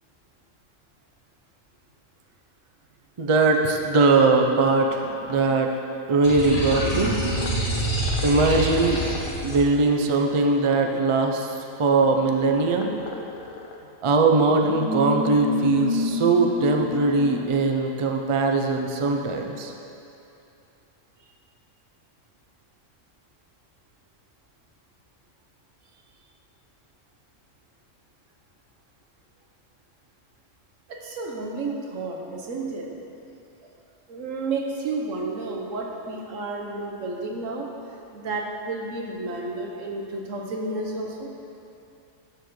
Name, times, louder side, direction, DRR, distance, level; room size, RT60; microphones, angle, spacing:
voice 1, 3.2-5.7 6.1-7.1 8.2-9.0 9.4-11.5 11.8-12.9 14.0-19.7, right 3 dB, 50° right, 3 dB, 0.3 m, -21 dB
sound 1, 4.9-5.6 6.4-11.4 12.0-13.8 14.4-17.5, left 4 dB, 75° left, 1.0 m, -32 dB
sound 2, 6.2-9.6, right 1 dB, 55° left, 2.4 m, -27 dB
voice 2, 30.9-32.9 34.1-37.7 38.1-41.3, right 3 dB, 80° right, 0 dB, 1.3 m, -31 dB
11.0 x 7.1 x 3.1 m, 2.7 s
omnidirectional pair, 1.3 m